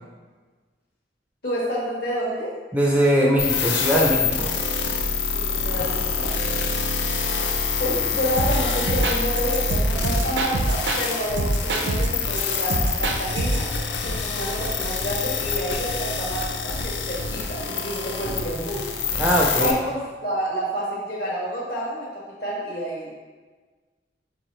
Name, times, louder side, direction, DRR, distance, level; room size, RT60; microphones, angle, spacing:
voice 1, 1.4-2.5 5.3-6.3 7.8-13.7 14.0-18.8 19.6-23.1, equal, 60° left, -5 dB, 1.3 m, -29 dB
voice 2, 2.7-4.5 19.2-19.8, right 1 dB, 10° right, -3 dB, 0.4 m, -20 dB
sound 1, 3.4-19.7, left 5 dB, 80° left, 0.5 m, -26 dB
sound 2, 8.4-11.1 11.4-13.7, right 2 dB, 80° right, 0.5 m, -25 dB
4.7 x 3.3 x 3.1 m, 1.4 s
head